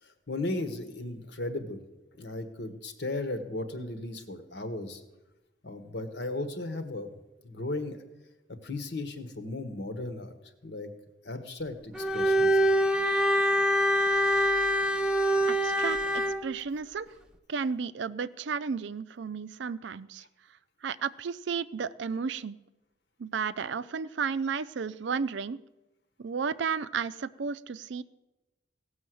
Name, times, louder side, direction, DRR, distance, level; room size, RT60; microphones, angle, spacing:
voice 1, 0.0-1.8 2.2-5.0 5.6-7.1 7.4-8.0 8.6-10.3 10.6-10.9 11.2-12.7, left 2 dB, 60° left, 9 dB, 1.3 m, -36 dB
Bowed string instrument, 11.9-16.4, equal, 5° right, 0.6 m, -25 dB
voice 2, 15.5-17.1 17.5-20.2 20.8-22.6 23.2-25.6 26.2-28.0, right 5 dB, 65° right, 16 dB, 0.4 m, -33 dB
16.5 x 6.4 x 7.7 m, 1.0 s
head